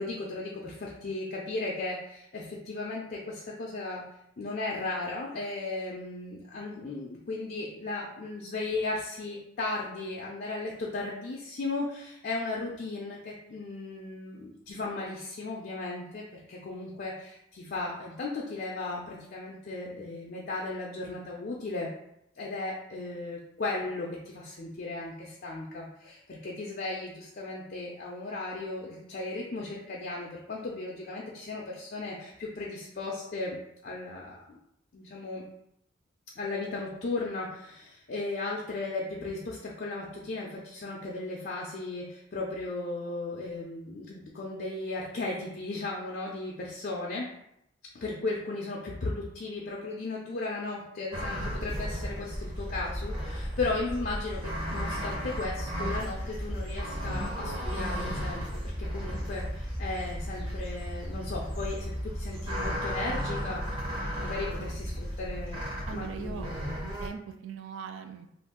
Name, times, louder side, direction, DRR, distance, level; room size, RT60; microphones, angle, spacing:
voice 1, 0.0-4.0 4.4-21.9 22.4-33.6 33.8-34.6 34.9-35.4 36.4-47.3 47.9-58.4 58.8-63.6 64.2-65.6 65.9-66.5, left 3 dB, 50° left, -3 dB, 0.4 m, -36 dB
sound 1, 51.1-67.1, equal, 25° right, 0.7 m, -34 dB
voice 2, 65.9-66.5 66.8-68.3, right 6 dB, 75° right, 7 dB, 0.3 m, -40 dB
2.6 x 2.3 x 3.6 m, 0.78 s
head